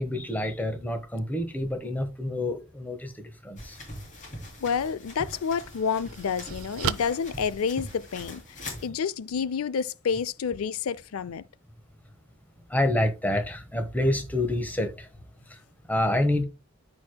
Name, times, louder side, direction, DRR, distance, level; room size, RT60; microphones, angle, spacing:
voice 1, 0.0-3.8 12.7-15.1 15.5-15.6 15.9-16.4, left 1 dB, 10° left, 1.2 m, -27 dB
sound 1, 3.6-8.9, left 1 dB, 35° left, 3.1 m, -42 dB
voice 2, 4.6-11.4, left 6 dB, 85° left, 0.4 m, -29 dB
sound 2, 5.3-8.3, right 7 dB, 80° right, 0.5 m, -36 dB
13.5 x 4.7 x 2.2 m
head